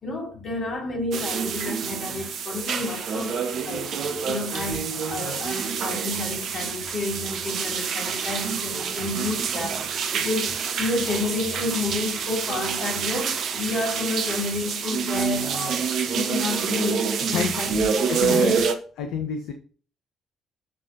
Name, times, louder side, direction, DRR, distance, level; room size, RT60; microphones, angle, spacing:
voice 1, 0.0-3.9 4.3-9.8 10.1-15.9 16.1-18.6, left 3 dB, 40° left, 3.6 m, -30 dB
sound 1, 1.1-18.8, right 6 dB, 55° right, 1.1 m, -27 dB
voice 2, 18.1-18.5 19.0-19.5, left 6 dB, 60° left, 1.0 m, -28 dB
11.5 x 7.4 x 2.8 m
figure-of-eight pair, 45°, 0 cm